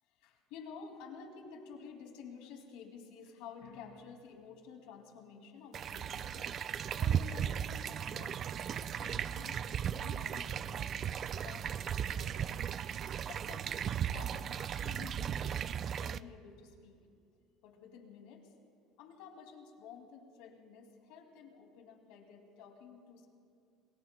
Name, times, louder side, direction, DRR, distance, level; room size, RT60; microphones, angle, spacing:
voice 1, 0.1-6.5 7.0-8.4 8.8-10.9 11.3-12.7 13.3-15.7 16.0-17.0 17.6-18.5 19.0-23.3, left 6 dB, 80° left, 3 dB, 2.3 m, -52 dB
sound 1, 5.7-16.2, right 9 dB, 40° right, 0.3 m, -36 dB
28.5 x 20.5 x 2.2 m, 2.3 s
cardioid pair, 130°, 0 cm